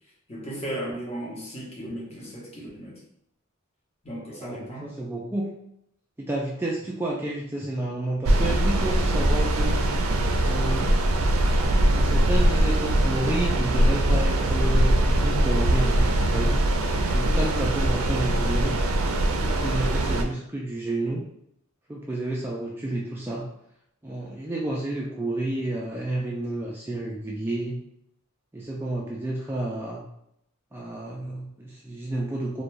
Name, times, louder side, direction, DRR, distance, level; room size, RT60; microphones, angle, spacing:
voice 1, 0.3-3.0 4.0-4.9, right 1 dB, 30° left, -5 dB, 0.9 m, -35 dB
voice 2, 4.4-5.5 6.2-9.8 10.4-10.9 11.8-16.5 17.1-18.8 19.3-21.3 21.9-23.5 24.0-27.8 28.5-30.0 30.7-32.6, right 1 dB, 10° right, -4 dB, 0.3 m, -30 dB
sound 1, 8.2-20.2, right 1 dB, 90° right, 0.4 m, -22 dB
2.5 x 2.1 x 3.1 m, 0.75 s
head